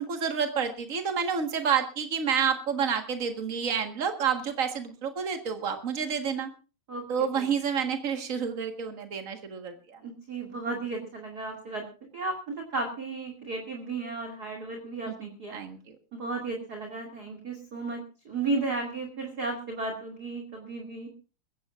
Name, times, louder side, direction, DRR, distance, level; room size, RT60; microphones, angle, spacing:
voice 1, 0.0-6.5 7.1-10.0 15.0-15.1 15.5-15.9, right 7 dB, 60° right, 6 dB, 0.8 m, -29 dB
voice 2, 10.0-11.8 12.1-15.6 16.1-21.1, right 3 dB, 30° right, 2 dB, 2.4 m, -34 dB
22.5 x 16.0 x 2.5 m, 0.34 s
omnidirectional pair, 3.9 m